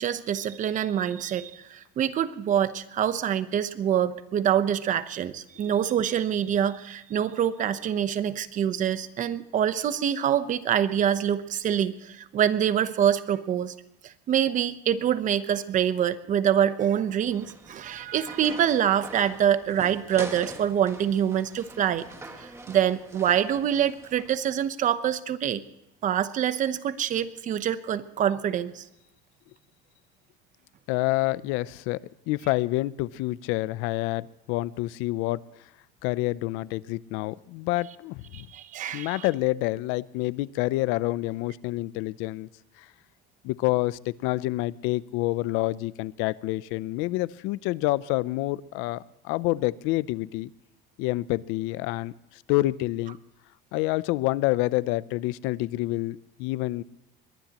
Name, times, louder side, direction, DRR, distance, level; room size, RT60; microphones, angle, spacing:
voice 1, 0.0-13.7 14.0-22.1 22.4-25.6 26.0-28.8 38.3-39.2, right 9 dB, 40° right, 13 dB, 0.9 m, -25 dB
sound 1, 17.1-24.3, right 3 dB, 15° right, 1.8 m, -44 dB
voice 2, 30.9-32.0 32.3-35.4 36.0-38.5 38.9-42.5 43.4-50.5 51.0-53.2 53.7-56.8, left 19 dB, 85° left, 19 dB, 0.6 m, -28 dB
22.5 x 19.0 x 3.0 m, 0.89 s
cardioid pair, 150°, 20 cm